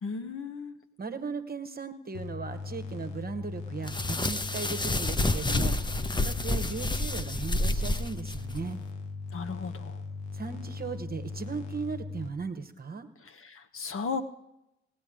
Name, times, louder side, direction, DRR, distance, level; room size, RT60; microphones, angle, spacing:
voice 1, 0.0-0.7 9.3-10.0 13.2-14.2, left 5 dB, 40° left, 8 dB, 1.2 m, -35 dB
voice 2, 1.0-5.8 6.1-8.8 10.3-13.1, right 5 dB, 30° right, 9 dB, 1.4 m, -37 dB
sound 1, 2.1-12.3, left 4 dB, 70° left, 1.3 m, -39 dB
sound 2, 3.9-8.6, left 2 dB, 15° left, 0.9 m, -29 dB
17.5 x 9.6 x 5.1 m, 0.88 s
figure-of-eight pair, 40°, 33 cm